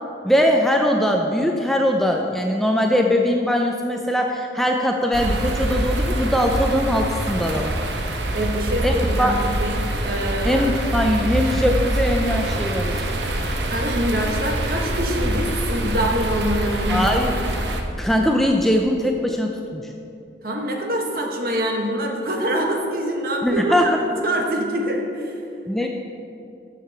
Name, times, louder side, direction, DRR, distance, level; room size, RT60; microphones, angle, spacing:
voice 1, 0.2-7.8 8.8-9.3 10.4-13.0 16.9-17.3 18.0-19.9 23.4-24.0 25.7-25.9, equal, ahead, 1 dB, 0.4 m, -21 dB
sound 1, 5.1-17.8, right 1 dB, 75° right, 0.9 m, -25 dB
Bowed string instrument, 5.6-10.7, equal, 65° left, 0.9 m, -38 dB
voice 2, 8.3-10.7 13.6-17.1 20.4-25.3, equal, 50° right, 1 dB, 1.2 m, -25 dB
7.7 x 6.7 x 6.7 m, 2.6 s
head